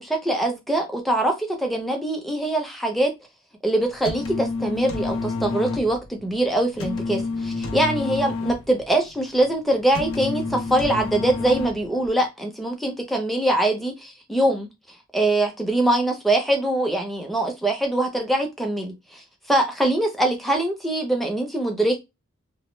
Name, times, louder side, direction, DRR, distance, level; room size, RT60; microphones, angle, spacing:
voice 1, 0.0-3.1 3.6-14.7 15.1-22.0, right 1 dB, ahead, 0.4 m, -23 dB
sound 1, 3.8-12.1, left 3 dB, 75° left, 0.5 m, -29 dB
2.1 x 2.0 x 3.1 m
head